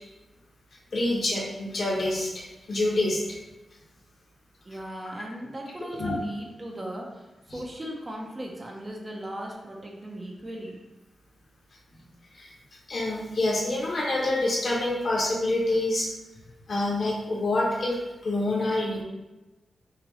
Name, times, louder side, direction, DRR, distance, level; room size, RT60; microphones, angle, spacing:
voice 1, 0.9-3.2 6.0-6.2 12.3-12.5 12.9-16.1 16.7-18.0 18.2-19.0, left 2 dB, 60° left, -3 dB, 1.2 m, -26 dB
voice 2, 4.6-10.8, right 1 dB, 25° right, -1 dB, 0.8 m, -37 dB
5.8 x 2.6 x 3.2 m, 1.1 s
wide cardioid pair, 110°, 0 cm